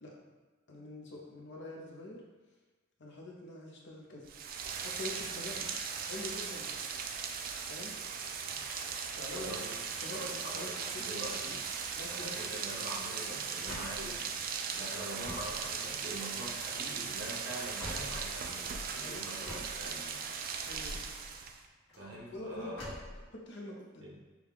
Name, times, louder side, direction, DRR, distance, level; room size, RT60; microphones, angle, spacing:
voice 1, 0.7-2.2 3.0-4.3 4.8-5.6 6.0-6.9 7.7-8.0 9.1-9.6 10.0-11.3 11.9-12.5 19.0-19.2 20.6-21.1 22.3-22.9 23.3-24.1, left 2 dB, 60° left, -2 dB, 0.8 m, -45 dB
Rain, 4.3-21.7, right 6 dB, 45° right, 0.3 m, -38 dB
voice 2, 9.3-9.8 10.1-11.6 12.1-14.2 14.7-20.2 22.0-22.9 24.0-24.2, right 1 dB, 70° right, -6 dB, 1.3 m, -44 dB
sound 1, 12.5-18.9 19.4-23.2, left 1 dB, 90° left, 1.4 m, -48 dB
6.2 x 2.3 x 3.5 m, 1.3 s
head